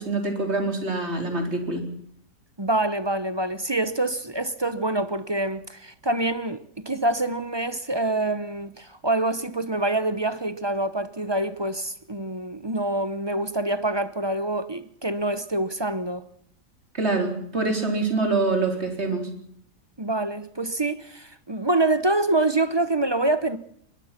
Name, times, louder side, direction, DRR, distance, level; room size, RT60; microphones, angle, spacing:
voice 1, 0.0-1.9 16.9-19.3, right 3 dB, 40° right, 4.3 m, -25 dB
voice 2, 2.6-16.2 20.0-23.6, right 2 dB, 20° right, 0.7 m, -26 dB
23.0 x 21.5 x 5.9 m
omnidirectional pair, 1.7 m